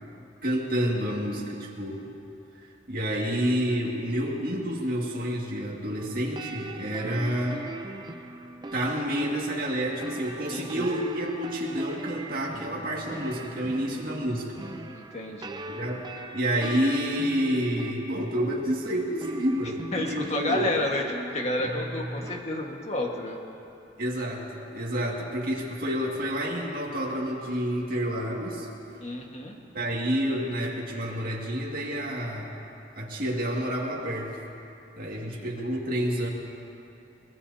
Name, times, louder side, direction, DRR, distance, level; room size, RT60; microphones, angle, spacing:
voice 1, 0.4-2.1 2.9-7.7 8.7-14.6 15.7-16.1 16.3-20.7 24.0-24.5 24.7-28.7 29.7-32.5 32.9-34.4 35.0-36.3, equal, 50° right, -3 dB, 2.1 m, -29 dB
sound 1, 6.0-22.4, right 1 dB, 25° right, 0.6 m, -40 dB
voice 2, 10.5-10.9 14.9-15.6 19.9-21.0 21.3-23.4 29.0-29.6 35.1-35.5, left 1 dB, 40° left, 1 dB, 1.6 m, -30 dB
23.5 x 19.0 x 2.8 m, 2.7 s
head